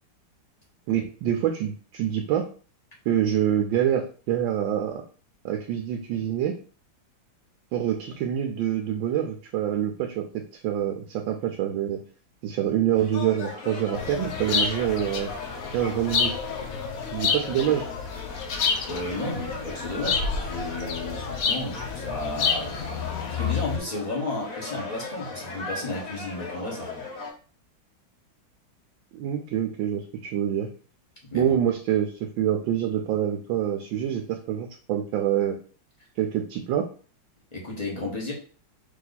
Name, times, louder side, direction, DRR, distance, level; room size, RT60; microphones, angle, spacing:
voice 1, 0.9-2.5 3.1-5.0 5.4-6.6 7.7-12.0 12.4-15.3 15.7-16.4 17.1-17.9 29.1-30.0 30.3-30.7 31.3-35.6 36.2-36.9, right 10 dB, 75° right, 4 dB, 1.3 m, -26 dB
sound 1, 12.9-27.3, left 3 dB, 50° left, 1.2 m, -37 dB
sound 2, 13.9-23.8, left 6 dB, 75° left, 0.8 m, -29 dB
voice 2, 18.9-22.7 23.3-27.0 31.2-31.5 37.5-38.3, left 2 dB, 25° left, -3 dB, 1.1 m, -33 dB
3.7 x 2.9 x 4.0 m, 0.40 s
omnidirectional pair, 2.2 m